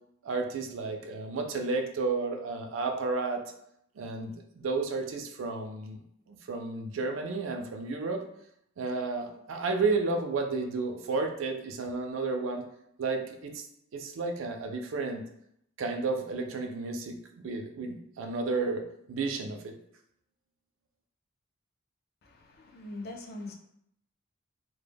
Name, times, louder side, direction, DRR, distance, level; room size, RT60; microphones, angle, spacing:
voice 1, 0.2-3.4 4.0-8.2 8.8-12.6 13.0-13.6 13.9-15.2 15.8-17.2 17.4-19.8, right 3 dB, 70° right, 4 dB, 0.4 m, -32 dB
voice 2, 22.2-23.5, left 2 dB, 50° left, 3 dB, 0.3 m, -42 dB
2.1 x 2.0 x 3.3 m, 0.74 s
head